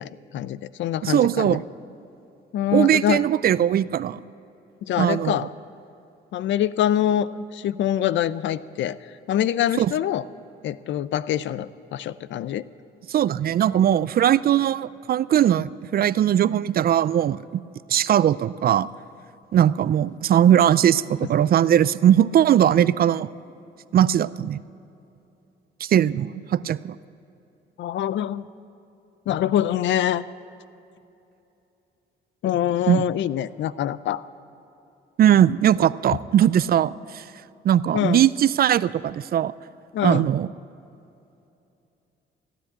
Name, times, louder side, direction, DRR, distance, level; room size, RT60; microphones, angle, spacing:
voice 1, 0.0-1.6 2.5-3.2 4.8-5.5 6.3-9.0 9.3-10.2 10.6-12.7 27.8-28.4 29.3-30.2 32.4-34.2 37.9-38.2 39.9-40.3, left 11 dB, 70° left, 17 dB, 0.5 m, -24 dB
voice 2, 1.0-1.6 2.7-4.2 5.0-5.4 9.8-9.9 13.1-17.6 17.9-18.9 19.5-23.3 23.9-24.6 25.8-27.0 32.9-33.1 35.2-37.2 37.6-39.5 40.0-40.5, right 10 dB, 50° right, 18 dB, 0.4 m, -20 dB
15.0 x 10.0 x 8.1 m, 2.8 s
cardioid pair, 90°, 20 cm